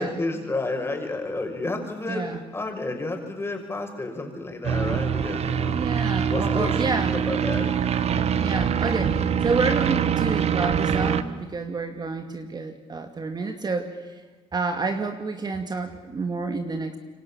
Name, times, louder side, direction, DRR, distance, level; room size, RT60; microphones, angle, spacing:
voice 1, 0.0-5.8 6.2-6.8 7.1-7.8, left 2 dB, 20° left, 3 dB, 6.3 m, -31 dB
voice 2, 2.1-2.4 5.7-7.1 8.4-14.0 14.5-17.0, right 3 dB, 30° right, 6 dB, 2.4 m, -29 dB
sound 1, 4.6-11.2, right 8 dB, 50° right, 1.6 m, -24 dB
27.5 x 25.0 x 7.3 m, 1.3 s
cardioid pair, 90°, 13 cm